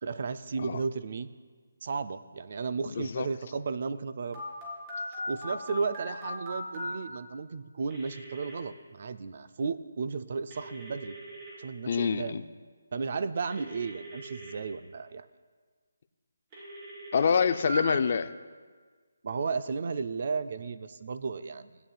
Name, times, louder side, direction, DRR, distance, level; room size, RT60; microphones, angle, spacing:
voice 1, 0.0-1.3 1.8-4.4 5.3-11.2 11.6-12.4 12.9-15.3 19.2-21.8, right 5 dB, 45° right, 12 dB, 0.4 m, -34 dB
voice 2, 3.0-3.3 11.9-12.4 17.1-18.3, left 6 dB, 40° left, 11 dB, 0.4 m, -26 dB
Telephone, 4.3-6.9 7.9-8.5 10.5-11.5 13.5-14.5 16.5-17.8, equal, 25° right, 3.2 m, -40 dB
17.0 x 8.8 x 2.3 m, 1.5 s
hypercardioid pair, 170°, 0 cm